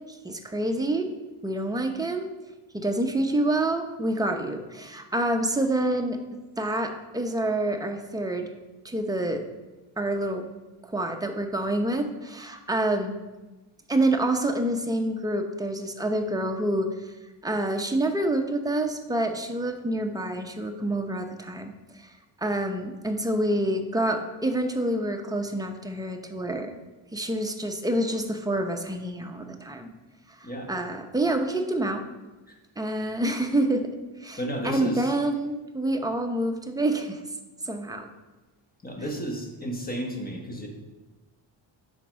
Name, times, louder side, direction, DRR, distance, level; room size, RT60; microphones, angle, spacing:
voice 1, 0.1-1.1 1.4-2.3 2.7-6.2 6.6-8.5 8.8-9.4 10.0-10.4 10.8-13.1 13.9-17.1 17.4-22.1 22.4-26.8 27.1-29.9 30.4-32.0 32.8-33.9 34.2-34.4 34.6-37.2 37.7-38.1, right 1 dB, 10° right, 4 dB, 0.7 m, -27 dB
voice 2, 34.4-35.1 38.8-40.7, right 1 dB, 20° left, 2 dB, 1.3 m, -32 dB
5.7 x 4.4 x 5.1 m, 1.1 s
cardioid pair, 90°, 48 cm